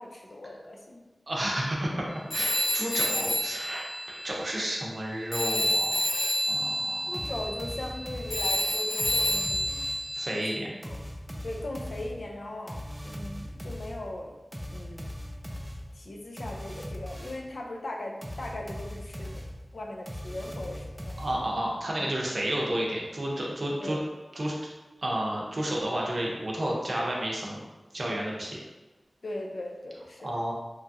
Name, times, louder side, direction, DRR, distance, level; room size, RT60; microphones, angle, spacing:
voice 1, 0.0-1.1 7.0-9.8 10.5-11.0 11.4-14.3 14.7-15.1 15.9-19.5 19.7-21.1 22.0-22.2 23.8-24.1 29.2-30.3, left 1 dB, 75° left, 0 dB, 0.4 m, -39 dB
voice 2, 1.3-6.0 6.5-7.1 10.1-10.7 21.2-24.0 24.4-24.5 25.0-27.6 27.9-28.6 30.2-30.5, right 1 dB, 55° right, -3 dB, 0.6 m, -31 dB
Telephone, 2.3-5.0 5.3-10.6, equal, 45° left, 0.8 m, -29 dB
sound 1, 7.1-10.2 10.8-17.6 18.2-21.7, equal, 10° right, 0.4 m, -40 dB
2.9 x 2.3 x 2.6 m, 1.1 s
wide cardioid pair, 65°, 0 cm